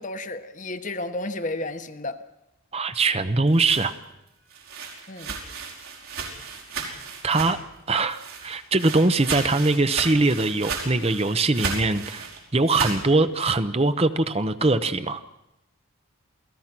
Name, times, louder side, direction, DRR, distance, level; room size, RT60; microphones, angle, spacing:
voice 1, 0.0-2.2 5.1-5.3, left 2 dB, 35° left, 9 dB, 1.1 m, -32 dB
voice 2, 2.7-3.9 6.8-7.0 7.2-7.6 7.9-15.2, right 3 dB, 30° right, 11 dB, 0.8 m, -22 dB
sound 1, 3.5-7.8 8.1-13.0, right 4 dB, 80° right, 5.2 m, -34 dB
28.0 x 18.0 x 6.1 m, 0.92 s
head